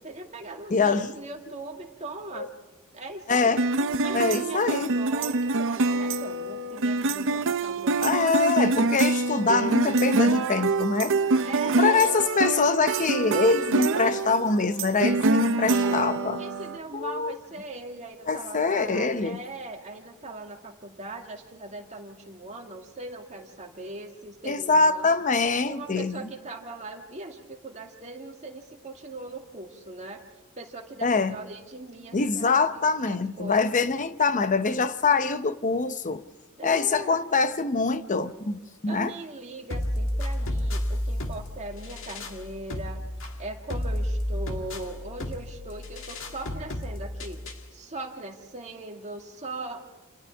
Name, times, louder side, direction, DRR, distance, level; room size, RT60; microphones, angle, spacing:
voice 1, 0.0-2.5 2.9-3.6 4.0-8.4 8.8-8.9 11.4-12.2 15.2-16.0 16.4-25.1 25.6-30.2 30.6-32.4 32.7-33.8 36.6-37.2 38.9-43.0 43.4-47.4 47.7-49.8, right 2 dB, 30° right, 2.2 m, -40 dB
voice 2, 0.7-1.1 2.3-2.5 3.3-3.7 4.1-4.9 8.0-11.2 11.8-16.4 16.9-17.4 18.3-19.4 24.4-26.2 31.0-31.4 32.1-36.2 36.6-39.1, left 4 dB, 35° left, 0.8 m, -24 dB
sound 1, 3.6-16.8, right 3 dB, 60° right, 0.7 m, -25 dB
sound 2, 39.7-47.7, left 1 dB, 60° left, 1.8 m, -32 dB
29.0 x 27.5 x 3.6 m
head